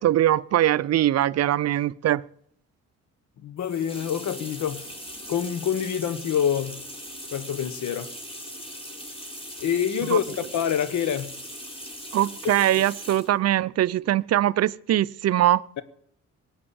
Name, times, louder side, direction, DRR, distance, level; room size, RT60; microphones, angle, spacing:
voice 1, 0.0-2.2 10.1-10.2 12.1-15.6, right 13 dB, 55° right, 0.5 m, -22 dB
voice 2, 3.4-4.9 5.3-6.8 7.3-8.1 9.6-11.3 12.4-12.8, left 8 dB, 70° left, 1.3 m, -26 dB
sound 1, 3.6-13.4, equal, 20° left, 4.0 m, -40 dB
18.0 x 8.0 x 8.6 m
cardioid pair, 90°, 30 cm